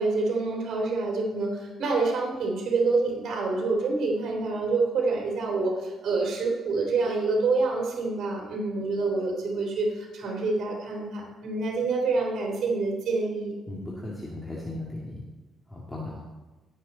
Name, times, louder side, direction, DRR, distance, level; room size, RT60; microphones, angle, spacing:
voice 1, 0.0-13.5, right 3 dB, 60° right, -1 dB, 3.0 m, -27 dB
voice 2, 13.7-15.2 15.7-16.2, left 2 dB, 10° left, -4 dB, 2.2 m, -36 dB
18.0 x 6.6 x 4.0 m, 1.2 s
cardioid pair, 90°, 0 cm